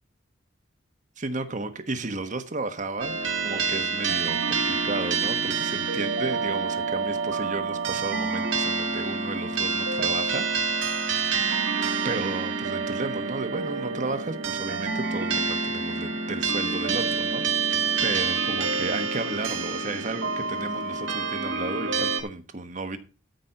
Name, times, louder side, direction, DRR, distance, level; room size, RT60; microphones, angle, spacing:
voice 1, 1.2-3.2 3.4-10.5 12.0-23.0, right 3 dB, 40° right, 1.2 m, -33 dB
sound 1, 3.0-22.2, right 4 dB, 80° right, 1.8 m, -27 dB
13.0 x 5.4 x 5.3 m
head